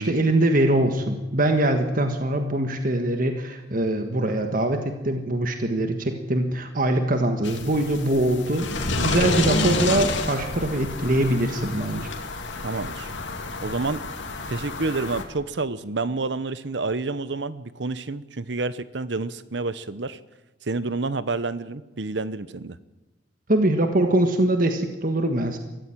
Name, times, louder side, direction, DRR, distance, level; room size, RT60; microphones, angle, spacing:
voice 1, 0.0-12.1 23.5-25.6, right 1 dB, 45° right, 5 dB, 1.6 m, -23 dB
sound 1, 7.4-15.2, left 3 dB, 75° left, 2.6 m, -29 dB
voice 2, 12.6-13.1 13.6-14.0 14.5-20.2 20.6-22.8, right 3 dB, 65° right, 15 dB, 0.9 m, -29 dB
23.0 x 14.5 x 9.1 m, 1.1 s
head